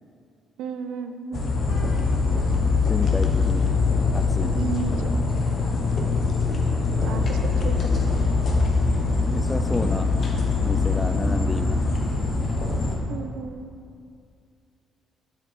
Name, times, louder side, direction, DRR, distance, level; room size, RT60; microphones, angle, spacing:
voice 1, 0.6-1.4 4.5-5.2 7.0-8.2 13.1-13.8, right 6 dB, 90° right, 8 dB, 0.4 m, -34 dB
sound 1, 1.3-13.0, left 4 dB, 55° left, 1.0 m, -23 dB
voice 2, 2.9-3.7 4.1-4.6 9.3-10.1 10.6-11.8, left 2 dB, 15° left, 9 dB, 0.4 m, -30 dB
7.3 x 6.8 x 3.3 m, 2.4 s
cardioid pair, 90°, 0 cm